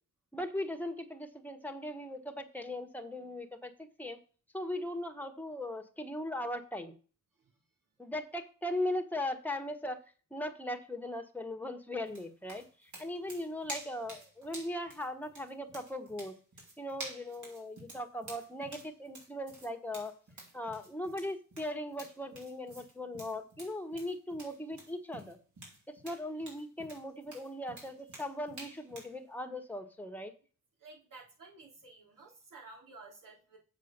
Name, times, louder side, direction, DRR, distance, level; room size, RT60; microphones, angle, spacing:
voice 1, 0.3-3.7 4.0-4.2 4.5-6.9 8.0-10.0 10.3-16.3 16.8-20.2 20.5-25.4 25.9-30.3, left 1 dB, 5° left, 5 dB, 1.4 m, -39 dB
sound 1, 12.1-29.2, right 2 dB, 65° right, 4.0 m, -50 dB
voice 2, 30.8-33.6, right 3 dB, 80° right, -2 dB, 3.8 m, -53 dB
7.6 x 5.0 x 6.6 m, 0.37 s
cardioid pair, 90°, 32 cm